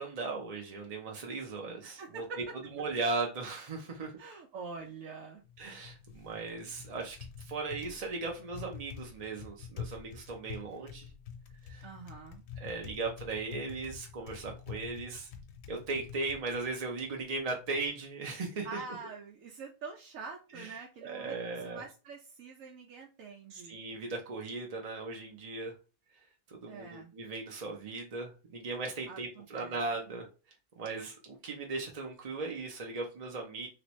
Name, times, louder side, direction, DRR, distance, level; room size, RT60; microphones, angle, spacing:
voice 1, 0.0-2.2 2.7-4.1 5.6-11.1 11.7-11.8 12.6-15.3 15.7-18.8 20.5-21.8 23.5-25.7 26.5-30.3 30.8-33.7, right 3 dB, 45° right, 0 dB, 0.5 m, -37 dB
voice 2, 1.8-2.4 4.2-5.4 11.8-12.4 18.6-21.3 21.6-23.8 26.7-27.1 29.1-29.8, right 4 dB, 85° right, 1 dB, 1.0 m, -45 dB
Typing, 5.4-17.9, left 7 dB, 65° left, 0.8 m, -47 dB
3.2 x 2.9 x 3.0 m, 0.33 s
omnidirectional pair, 1.4 m